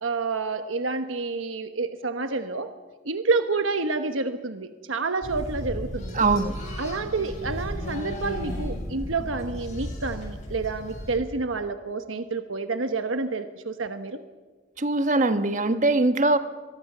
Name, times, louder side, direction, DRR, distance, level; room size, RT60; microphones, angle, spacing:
voice 1, 0.0-2.7 3.0-6.3 6.8-14.2, right 3 dB, 85° right, 8 dB, 1.2 m, -29 dB
sound 1, 5.2-11.2, equal, 35° left, 7.2 m, -34 dB
voice 2, 6.1-6.6 14.8-16.4, right 2 dB, 40° right, 9 dB, 1.4 m, -22 dB
23.5 x 23.0 x 6.8 m, 1.4 s
head